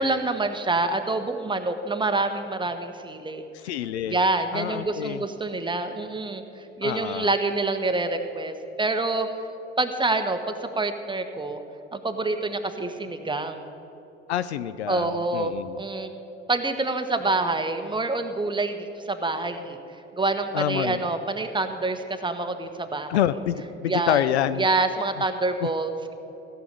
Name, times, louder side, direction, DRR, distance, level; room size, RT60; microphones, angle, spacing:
voice 1, 0.0-3.4 4.1-9.3 9.8-11.6 11.9-13.6 14.9-16.1 16.5-19.8 20.1-23.2 23.9-26.1, right 2 dB, 15° right, 7 dB, 1.2 m, -27 dB
voice 2, 3.5-4.2 4.5-5.2 6.8-7.3 14.3-15.8 20.5-21.0 23.1-24.7 25.6-25.7, left 11 dB, 75° left, 14 dB, 0.6 m, -27 dB
16.0 x 6.9 x 9.2 m, 2.9 s
figure-of-eight pair, 60°, 33 cm